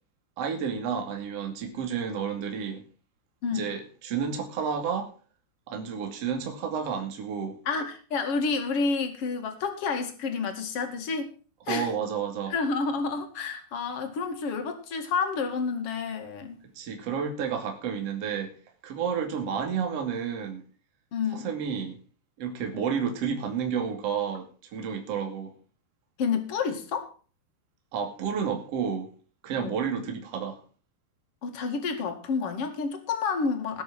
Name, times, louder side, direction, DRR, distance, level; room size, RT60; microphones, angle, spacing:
voice 1, 0.4-2.8 3.5-5.1 5.7-7.6 11.7-12.5 16.7-18.5 18.8-20.6 21.3-22.0 22.4-25.5 27.9-29.1 29.4-30.6, right 7 dB, 40° right, 2.9 m, -31 dB
voice 2, 7.7-11.3 11.7-11.9 12.5-16.6 21.1-21.5 26.2-27.1 29.6-29.8 31.4-33.8, left 5 dB, 45° left, 2.2 m, -29 dB
19.5 x 6.7 x 6.0 m
omnidirectional pair, 5.1 m